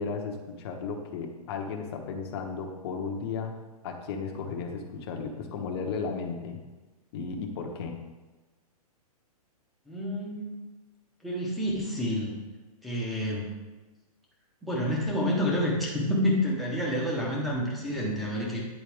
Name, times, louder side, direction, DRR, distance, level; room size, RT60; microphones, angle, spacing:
voice 1, 0.0-3.6 3.8-6.6 7.1-8.0, left 5 dB, 40° left, 2 dB, 1.0 m, -34 dB
voice 2, 9.9-10.5 11.2-12.3 12.8-13.5 14.6-18.6, equal, ahead, -5 dB, 1.0 m, -28 dB
9.3 x 4.0 x 3.5 m, 1.2 s
hypercardioid pair, 155°, 20 cm